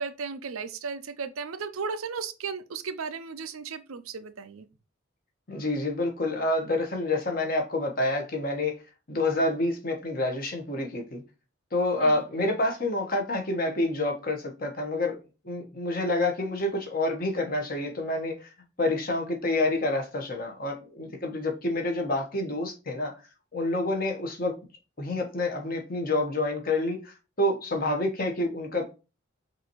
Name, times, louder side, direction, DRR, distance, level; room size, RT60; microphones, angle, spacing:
voice 1, 0.0-4.7 12.0-12.2, right 5 dB, 85° right, 0.6 m, -35 dB
voice 2, 5.5-8.7 9.1-11.2 11.7-15.2 15.4-18.5 18.8-23.1 23.5-24.6 25.0-28.9, left 2 dB, 45° left, 1.2 m, -28 dB
6.0 x 2.7 x 3.0 m
head